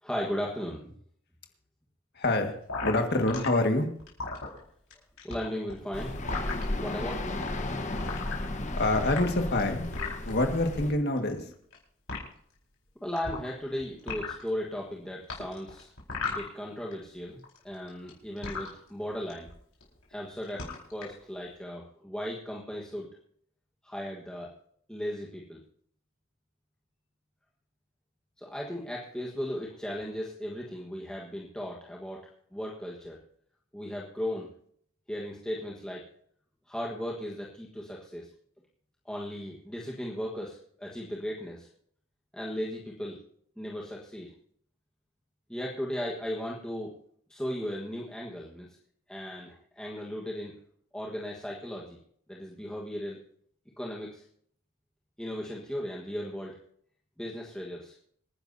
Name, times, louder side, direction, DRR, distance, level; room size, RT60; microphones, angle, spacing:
voice 1, 0.0-0.9 5.2-6.2 6.8-7.4 13.0-15.9 16.3-19.5 20.1-23.1 23.8-24.5 24.9-25.6 28.4-33.2 33.7-34.5 35.1-36.0 36.7-38.3 39.0-41.7 42.3-43.2 43.6-44.3 45.5-46.9 47.3-48.7 49.1-50.5 50.9-52.0 52.3-53.2 53.8-54.2 55.2-56.6 57.2-57.9, equal, 5° left, -4 dB, 1.4 m, -36 dB
voice 2, 2.2-2.5 2.8-3.9 8.7-9.9 10.3-11.4, left 2 dB, 50° left, 4 dB, 1.8 m, -26 dB
sound 1, 2.7-3.5 4.0-4.9 5.2-6.6 7.3-7.5 8.0-8.7 9.0-10.3 11.2-11.8 12.1-12.2 13.2-13.7 14.0-14.5 15.3-16.9 17.2-18.7 19.3-19.5 19.8-20.1 20.4-21.1, left 4 dB, 85° left, 4.8 m, -36 dB
sound 2, 5.9-10.9, left 2 dB, 35° left, 1.2 m, -34 dB
26.5 x 10.5 x 2.7 m, 0.64 s
head